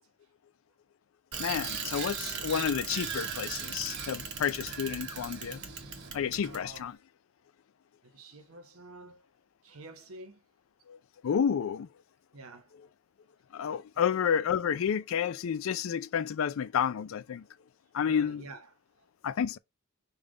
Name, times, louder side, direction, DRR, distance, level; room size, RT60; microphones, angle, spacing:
Bicycle, 1.3-6.8, right 6 dB, 50° right, 0.9 m, -38 dB
voice 1, 1.4-5.6 6.1-6.9 10.9-11.0 11.2-11.9 13.5-17.4 17.9-18.4 19.2-19.6, left 8 dB, 70° left, 0.4 m, -30 dB
voice 2, 6.4-7.0 8.0-9.2 9.6-10.4 12.3-12.7 13.9-14.1 18.0-18.7, right 2 dB, 80° right, 0.9 m, -49 dB
5.2 x 2.3 x 3.7 m
head